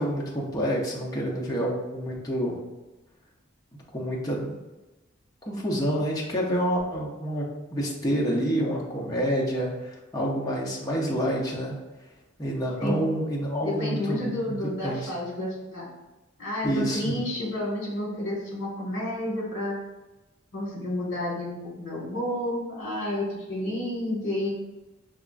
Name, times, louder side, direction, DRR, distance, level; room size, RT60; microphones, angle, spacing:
voice 1, 0.0-2.6 3.9-4.5 5.4-11.7 12.4-15.1 16.6-17.2, equal, 15° left, -3 dB, 0.5 m, -28 dB
voice 2, 13.6-15.9 16.4-19.7 20.5-24.5, left 1 dB, 65° left, -4 dB, 1.3 m, -30 dB
4.8 x 2.3 x 2.4 m, 1.1 s
head